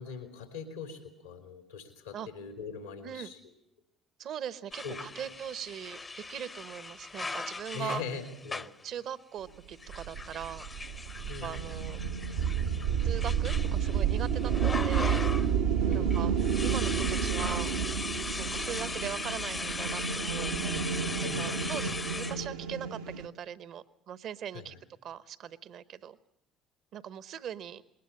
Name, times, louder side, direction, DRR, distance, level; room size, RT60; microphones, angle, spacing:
voice 1, 0.0-3.4 4.8-5.0 7.7-8.7 11.3-11.7 15.8-16.2 21.2-21.8 24.5-24.8, left 5 dB, 90° left, 5 dB, 2.8 m, -41 dB
voice 2, 4.2-8.0 8.8-10.7 11.4-12.0 13.0-15.3 15.9-16.3 16.6-17.7 18.4-20.6 21.2-24.7 25.0-26.2 26.9-27.8, right 9 dB, 60° right, 15 dB, 1.0 m, -40 dB
sound 1, 4.7-8.9 9.7-15.6 15.9-22.5, left 3 dB, 30° left, 0.8 m, -39 dB
sound 2, 9.9-23.3, right 7 dB, 80° right, 1.0 m, -30 dB
20.5 x 18.5 x 8.6 m, 0.79 s
hypercardioid pair, 55°, 0 cm